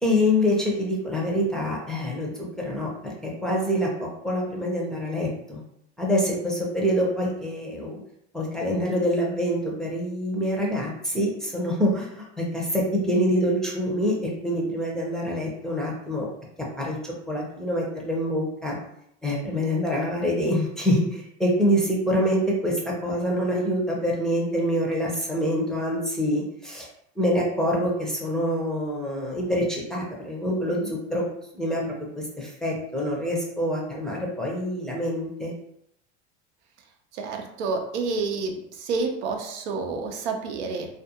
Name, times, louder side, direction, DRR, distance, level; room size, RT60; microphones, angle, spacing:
voice 1, 0.0-5.6 6.0-7.9 8.3-16.3 16.6-18.7 19.2-26.9 27.2-31.2 31.5-35.5, equal, ahead, -3 dB, 0.5 m, -26 dB
voice 2, 37.1-40.9, right 4 dB, 85° right, 3 dB, 0.6 m, -29 dB
2.4 x 2.3 x 2.8 m, 0.75 s
supercardioid pair, 115°, 34 cm